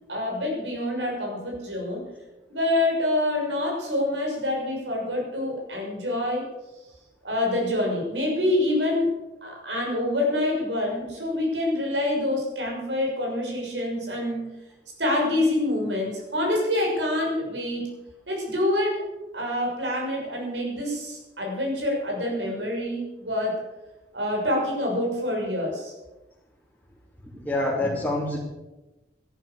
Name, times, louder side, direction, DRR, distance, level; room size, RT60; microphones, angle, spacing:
voice 1, 0.1-2.1 2.5-6.5 7.2-14.5 15.0-17.9 18.3-18.9 19.3-23.6 24.1-25.9, left 1 dB, 85° right, -1 dB, 6.5 m, -26 dB
voice 2, 27.3-28.4, left 1 dB, 5° left, -7 dB, 3.0 m, -26 dB
13.5 x 12.0 x 6.9 m, 1.0 s
head